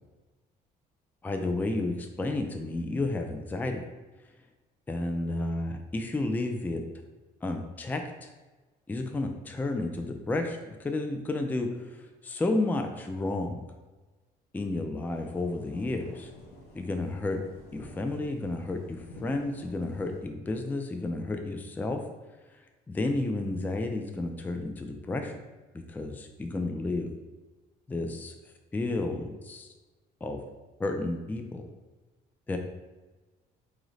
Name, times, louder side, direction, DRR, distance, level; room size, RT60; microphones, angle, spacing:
voice 1, 1.2-3.8 4.9-6.8 7.4-8.3 8.9-13.6 14.5-16.3 16.7-17.4 17.7-22.0 22.9-25.4 25.9-27.1 27.9-28.3 28.7-29.7 30.2-30.4 30.8-31.6 32.5-32.6, left 2 dB, 10° left, 5 dB, 0.3 m, -31 dB
sound 1, 15.0-20.2, left 1 dB, 70° left, 0.9 m, -50 dB
4.7 x 2.6 x 3.1 m, 1.2 s
cardioid pair, 110°, 17 cm